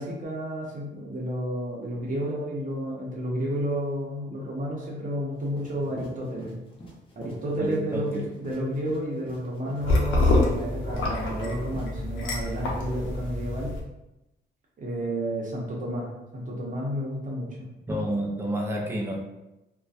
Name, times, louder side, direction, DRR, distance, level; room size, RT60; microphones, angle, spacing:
voice 1, 0.0-6.6 7.2-13.7 14.8-16.1 16.3-17.7, equal, 40° right, -3 dB, 0.7 m, -31 dB
sound 1, 5.4-11.9, equal, 25° left, 0.7 m, -46 dB
voice 2, 7.6-8.2 17.9-19.2, right 1 dB, 10° right, 0 dB, 0.4 m, -29 dB
sound 2, 9.8-13.8, left 2 dB, 80° left, 0.6 m, -26 dB
2.5 x 2.2 x 2.3 m, 0.94 s
cardioid pair, 90°, 20 cm